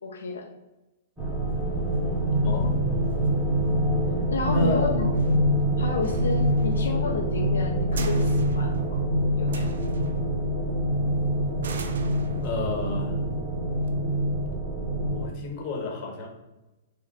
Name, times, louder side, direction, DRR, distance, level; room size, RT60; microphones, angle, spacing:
voice 1, 0.0-0.5 4.3-5.1 5.8-9.0 9.4-9.7, left 4 dB, 90° left, 0 dB, 0.5 m, -31 dB
sound 1, 1.2-15.3, equal, 10° right, 1.4 m, -25 dB
sound 2, 1.5-14.5, right 4 dB, 75° right, 0.4 m, -41 dB
voice 2, 2.4-3.0 4.5-5.0 12.4-13.1 15.1-16.3, left 3 dB, 40° left, 1 dB, 0.9 m, -30 dB
3.6 x 2.2 x 3.6 m, 1.0 s
hypercardioid pair, 125°, 0 cm